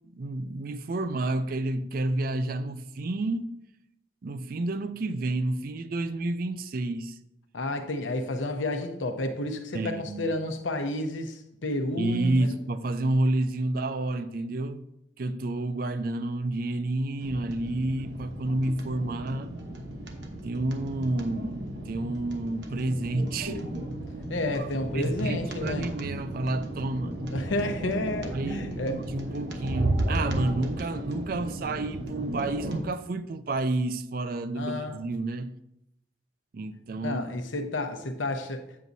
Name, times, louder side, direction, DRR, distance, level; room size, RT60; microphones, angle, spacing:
voice 1, 0.1-3.6 4.2-7.2 9.7-10.4 12.0-14.8 15.2-19.5 20.4-21.6 21.9-23.6 24.6-24.7 24.9-27.2 28.3-35.5 36.5-37.3, right 2 dB, 50° right, 0.4 m, -30 dB
voice 2, 7.5-12.5 24.3-25.9 27.3-29.0 34.5-35.0 37.0-38.7, left 1 dB, 90° left, 0.8 m, -31 dB
sound 1, 17.2-32.8, right 1 dB, 65° right, 1.0 m, -34 dB
8.2 x 7.6 x 2.7 m
head